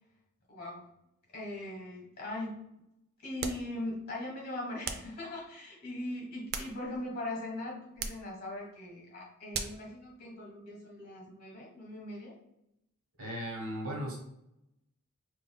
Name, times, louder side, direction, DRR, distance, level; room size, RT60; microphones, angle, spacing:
voice 1, 0.5-0.9 1.3-2.6 3.2-12.3, left 1 dB, 45° left, -1 dB, 1.4 m, -40 dB
sound 1, 3.4-3.7 4.8-5.2 6.2-7.1 8.0-8.3 9.5-9.9, right 5 dB, 45° right, 0.4 m, -38 dB
voice 2, 13.2-14.2, equal, 65° right, 0 dB, 1.0 m, -36 dB
5.4 x 2.5 x 2.2 m, 0.84 s
head